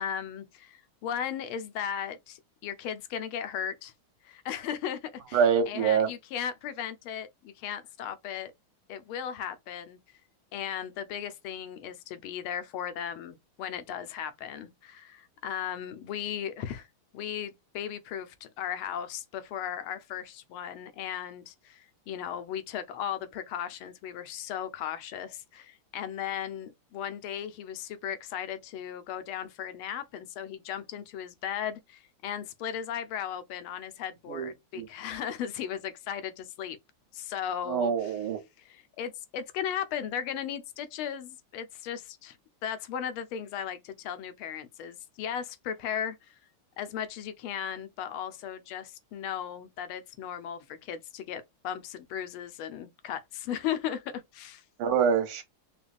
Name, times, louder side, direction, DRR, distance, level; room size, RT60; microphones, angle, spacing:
voice 1, 0.0-3.9 4.2-8.5 8.9-10.0 10.5-16.9 17.1-36.8 37.1-38.1 38.6-42.4 42.6-46.4 46.8-54.6, left 9 dB, 80° left, 1.5 m, -36 dB
voice 2, 5.3-6.1 34.3-34.9 37.7-38.4 54.8-55.4, right 7 dB, 90° right, 1.8 m, -25 dB
5.1 x 2.3 x 2.4 m
omnidirectional pair, 2.4 m